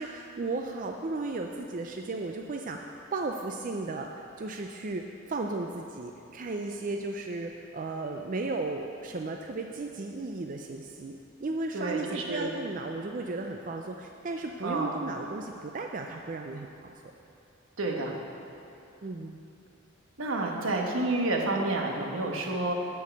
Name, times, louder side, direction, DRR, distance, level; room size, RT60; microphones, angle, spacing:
voice 1, 0.0-4.1 4.4-16.9 19.0-19.4, right 3 dB, 40° right, 2 dB, 0.4 m, -35 dB
voice 2, 11.7-12.5 14.6-14.9 17.8-18.1 20.2-22.7, right 2 dB, 80° right, 0 dB, 1.3 m, -29 dB
11.0 x 4.7 x 8.3 m, 2.9 s
head